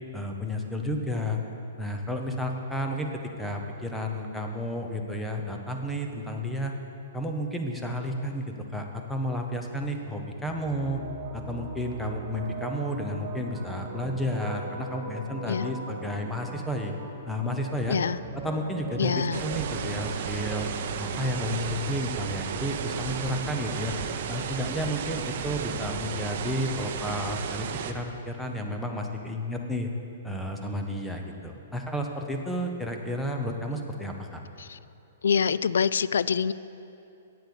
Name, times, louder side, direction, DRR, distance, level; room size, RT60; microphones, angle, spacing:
voice 1, 0.1-1.4 1.8-3.1 3.4-6.7 7.1-11.0 11.3-16.9 17.3-18.0 18.3-20.7 21.0-23.9 24.3-29.9 30.2-34.4, equal, 5° left, 2 dB, 0.7 m, -32 dB
sound 1, 10.5-20.6, right 3 dB, 20° right, 1.4 m, -40 dB
voice 2, 19.0-19.4 34.6-34.8 35.2-36.5, left 6 dB, 90° left, 18 dB, 0.3 m, -25 dB
sound 2, 19.3-27.9, right 7 dB, 45° right, 0.6 m, -33 dB
8.4 x 8.1 x 8.4 m, 2.7 s
hypercardioid pair, 165°, 0 cm